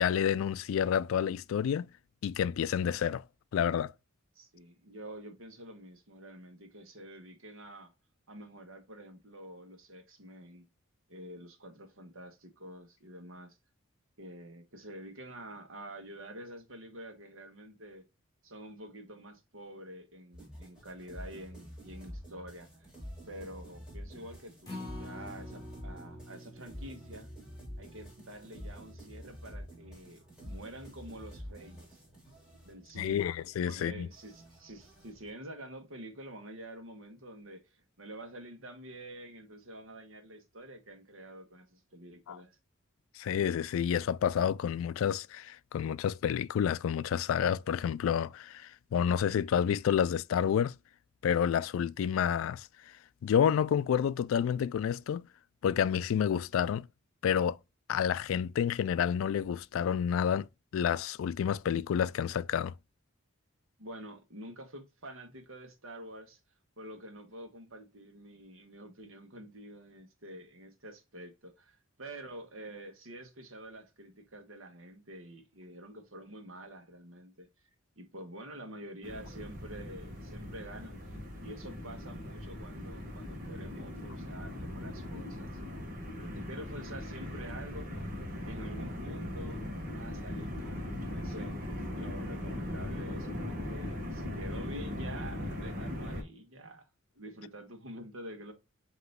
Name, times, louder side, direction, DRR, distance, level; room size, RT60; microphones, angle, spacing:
voice 1, 0.0-1.9 2.2-3.2 3.5-3.9 33.0-34.1 42.3-42.4 43.2-50.8 51.2-52.7 53.2-55.2 55.6-56.9 57.2-57.6 57.9-60.5 60.7-62.7, left 8 dB, 75° left, 0.3 m, -29 dB
voice 2, 4.3-7.9 8.3-10.7 11.1-13.6 14.2-18.1 18.4-22.9 23.3-27.3 27.8-32.0 32.6-33.3 33.7-37.7 38.0-42.6 63.8-66.4 66.8-77.5 78.0-81.1 81.4-85.6 86.1-88.1 88.4-91.5 91.9-96.9 97.1-98.5, right 1 dB, 80° right, 1.3 m, -48 dB
sound 1, 20.3-35.3, equal, 5° right, 2.1 m, -48 dB
Acoustic guitar, 24.6-31.0 31.4-31.5 31.9-32.0, left 1 dB, 20° left, 3.1 m, -49 dB
sound 2, 79.0-96.2, left 1 dB, 40° right, 1.4 m, -39 dB
7.8 x 3.0 x 2.2 m
head